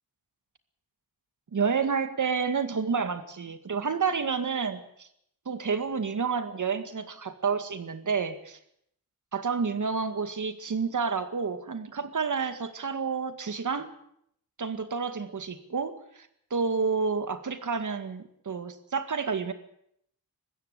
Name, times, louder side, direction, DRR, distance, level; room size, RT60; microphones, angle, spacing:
voice 1, 1.5-5.1 5.5-8.6 9.3-13.9 14.6-19.5, right 5 dB, 50° right, 9 dB, 2.1 m, -30 dB
21.0 x 15.5 x 8.4 m, 0.72 s
wide cardioid pair, 110°, 38 cm